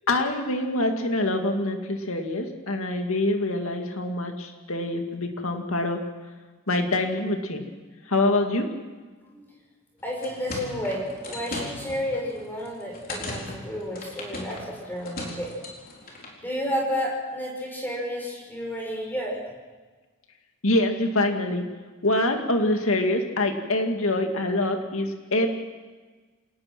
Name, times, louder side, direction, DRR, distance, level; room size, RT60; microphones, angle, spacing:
voice 1, 0.1-6.0 6.7-7.6 8.1-8.7 20.6-21.7 22.0-25.5, left 2 dB, 70° left, 4 dB, 2.3 m, -25 dB
sound 1, 10.0-16.4, left 1 dB, 40° left, 4.3 m, -38 dB
voice 2, 10.0-15.5 16.4-19.4, equal, 10° left, -1 dB, 6.4 m, -31 dB
27.5 x 18.5 x 6.1 m, 1.3 s
head